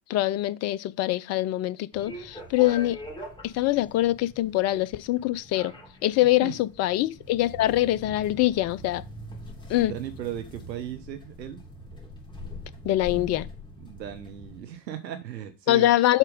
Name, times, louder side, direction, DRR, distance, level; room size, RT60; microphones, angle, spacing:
voice 1, 0.1-3.0 3.4-5.7 6.0-9.0 9.7-9.9 12.8-13.5 15.7-16.2, left 15 dB, 35° left, 0.5 m, -24 dB
sound 1, 1.9-14.6, left 1 dB, 10° left, 3.0 m, -43 dB
voice 2, 9.8-11.6 13.8-15.9, right 11 dB, 80° right, 0.9 m, -36 dB
7.4 x 4.4 x 5.0 m
hypercardioid pair, 75°, 50 cm